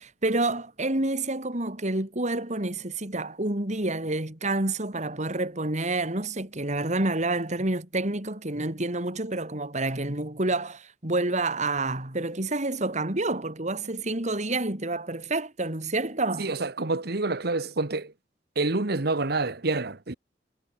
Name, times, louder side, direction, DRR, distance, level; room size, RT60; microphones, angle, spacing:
voice 1, 0.0-16.5, right 2 dB, 40° right, 3.3 m, -28 dB
voice 2, 16.4-18.1 18.5-20.1, right 3 dB, 65° right, 1.4 m, -27 dB
head